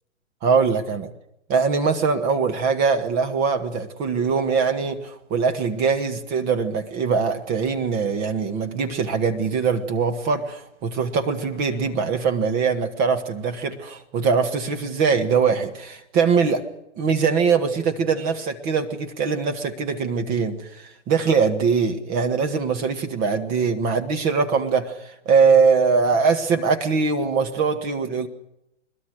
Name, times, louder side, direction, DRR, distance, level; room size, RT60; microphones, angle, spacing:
voice 1, 0.4-1.1 1.5-16.6 17.0-28.3, right 5 dB, 25° right, 1.5 m, -22 dB
22.0 x 22.0 x 6.4 m
hypercardioid pair, 140°, 35 cm